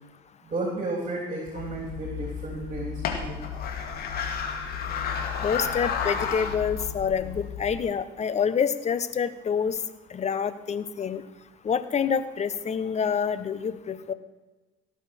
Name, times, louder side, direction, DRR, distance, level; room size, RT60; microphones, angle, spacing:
voice 1, 0.4-2.9 3.2-3.4, right 2 dB, 35° right, 0 dB, 3.5 m, -32 dB
sound 1, 1.5-7.8, left 6 dB, 65° left, 2.1 m, -32 dB
voice 2, 5.4-9.8 10.1-11.2 11.6-14.1, left 7 dB, 40° left, 13 dB, 1.1 m, -27 dB
17.0 x 6.9 x 6.1 m, 1.2 s
hypercardioid pair, 65°, 17 cm